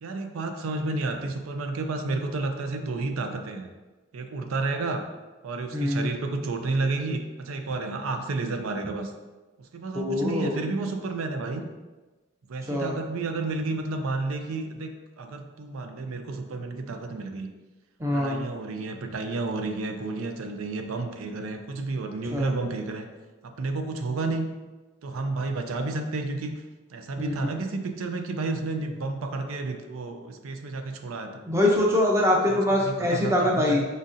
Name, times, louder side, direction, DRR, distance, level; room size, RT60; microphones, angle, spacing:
voice 1, 0.0-3.7 4.1-5.0 5.4-9.1 9.7-11.6 12.5-17.5 18.1-23.1 23.4-24.5 25.0-26.6 26.9-31.4 32.5-33.9, right 3 dB, 90° right, 6 dB, 0.5 m, -31 dB
voice 2, 5.7-6.1 9.9-10.6 12.7-13.0 18.0-18.5 22.3-22.5 27.2-27.5 31.5-33.8, left 1 dB, 15° right, -1 dB, 0.5 m, -24 dB
5.0 x 4.0 x 2.5 m, 1.2 s
head